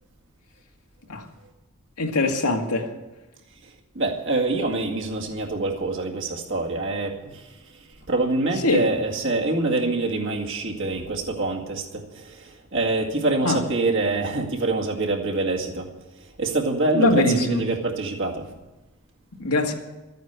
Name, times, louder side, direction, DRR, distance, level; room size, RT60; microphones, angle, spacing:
voice 1, 2.0-2.9 8.6-8.9 13.4-13.6 16.9-17.7 19.4-19.7, left 2 dB, 90° left, 1.9 m, -22 dB
voice 2, 3.6-15.9 16.2-18.5, right 2 dB, 55° right, 2.1 m, -26 dB
13.5 x 9.2 x 8.2 m
head